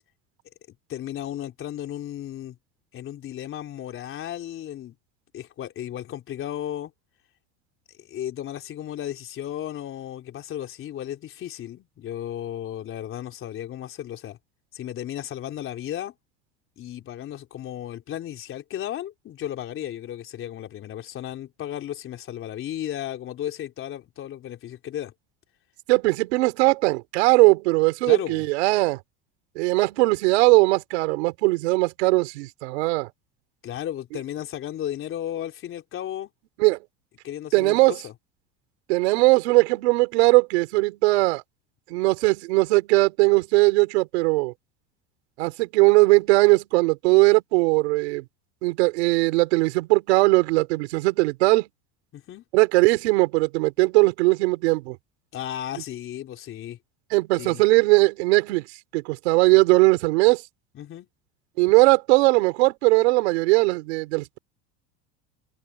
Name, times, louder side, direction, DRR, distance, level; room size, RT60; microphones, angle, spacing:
voice 1, 0.9-2.6 2.9-5.0 5.3-6.9 8.0-14.4 14.7-16.1 16.8-25.1 28.1-28.5 33.6-36.3 37.2-38.1 52.1-52.4 55.3-56.8 57.4-57.6 60.7-61.1, left 11 dB, 40° left, 3.8 m, -34 dB
voice 2, 25.9-29.0 29.6-33.1 36.6-36.8 37.5-38.0 38.9-41.4 41.9-44.5 45.4-48.2 48.6-51.7 52.5-55.0 57.1-58.7 58.9-60.4 61.6-64.4, right 24 dB, 90° right, 4.1 m, -19 dB
supercardioid pair, 135°, 32 cm